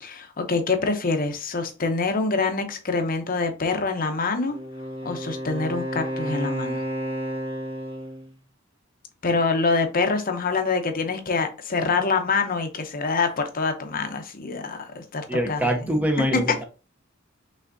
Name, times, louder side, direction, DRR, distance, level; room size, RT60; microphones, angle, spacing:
voice 1, 0.0-4.6 5.0-6.8 9.2-16.0 16.3-16.4, left 4 dB, 45° left, 0.8 m, -25 dB
Wind instrument woodwind instrument, 4.5-8.3, equal, 25° right, 2.0 m, -31 dB
voice 2, 15.3-16.6, equal, 10° right, 0.7 m, -24 dB
5.4 x 3.5 x 2.6 m
head